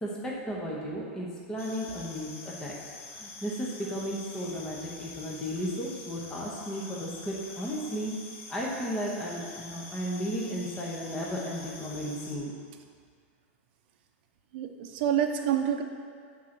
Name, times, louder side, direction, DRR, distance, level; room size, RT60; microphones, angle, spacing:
voice 1, 0.0-2.7 3.2-8.1 8.5-12.5, equal, 10° left, -4 dB, 0.8 m, -34 dB
sound 1, 1.6-12.4, left 3 dB, 80° left, 1.2 m, -46 dB
voice 2, 14.5-15.8, right 9 dB, 50° right, 5 dB, 0.6 m, -27 dB
7.5 x 3.8 x 5.9 m, 2.1 s
supercardioid pair, 165°, 7 cm